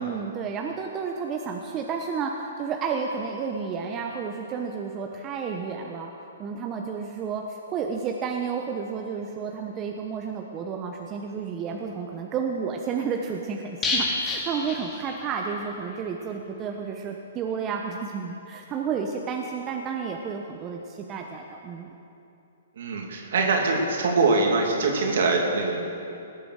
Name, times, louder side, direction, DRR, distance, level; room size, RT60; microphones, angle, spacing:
voice 1, 0.0-6.1 6.4-21.9, right 6 dB, 25° right, 2 dB, 1.0 m, -31 dB
sound 1, 13.8-15.6 15.9-16.0 16.3-16.4, left 3 dB, 20° left, 2.6 m, -29 dB
voice 2, 22.8-25.8, right 3 dB, 65° right, 1 dB, 2.7 m, -23 dB
19.0 x 8.3 x 6.6 m, 2.7 s
hypercardioid pair, 125°, 0 cm